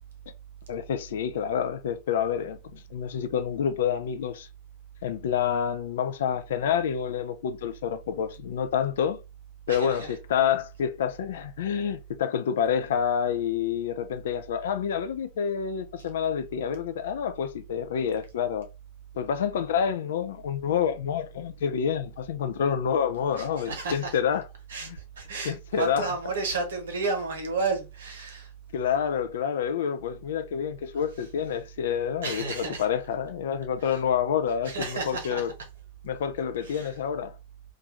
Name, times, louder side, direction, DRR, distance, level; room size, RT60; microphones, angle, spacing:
voice 1, 0.7-4.5 5.0-9.2 9.7-18.7 19.2-24.4 24.8-25.0 25.4-26.1 28.7-35.5 36.0-37.3, left 8 dB, 60° left, 0.3 m, -28 dB
voice 2, 9.7-10.1 23.4-24.1 24.7-28.5 32.2-32.9 33.8-34.0 34.6-35.4 36.6-36.9, right 3 dB, 65° right, 0.9 m, -32 dB
2.5 x 2.3 x 3.0 m
figure-of-eight pair, 90°, 0 cm